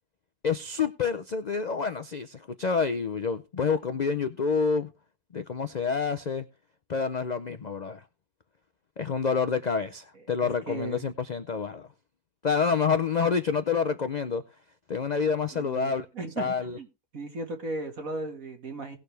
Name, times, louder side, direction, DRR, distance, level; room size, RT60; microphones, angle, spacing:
voice 1, 0.4-4.9 5.3-6.5 6.9-8.0 9.0-11.9 12.4-14.4 14.9-16.1 16.4-16.8, left 5 dB, 65° left, 0.4 m, -28 dB
voice 2, 10.7-11.0 15.5-16.9 17.1-19.0, right 2 dB, 65° right, 2.3 m, -36 dB
18.5 x 6.7 x 3.3 m
omnidirectional pair, 1.6 m